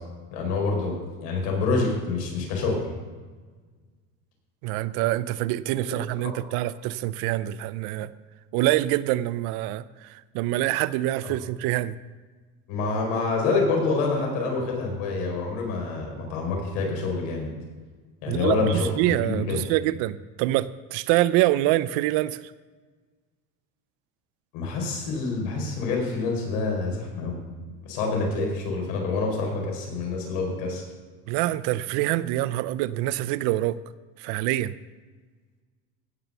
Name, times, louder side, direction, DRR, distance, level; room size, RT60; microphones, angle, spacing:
voice 1, 0.3-2.8 5.8-6.3 11.2-11.4 12.7-17.5 18.2-18.9 19.2-19.6 24.5-27.4 27.8-30.8, left 3 dB, 90° left, 0 dB, 4.4 m, -27 dB
voice 2, 4.6-8.1 8.5-11.9 18.3-22.4 31.3-33.8 34.2-34.7, right 15 dB, 65° right, 17 dB, 0.5 m, -25 dB
16.5 x 6.0 x 6.8 m, 1.4 s
cardioid pair, 175°, 36 cm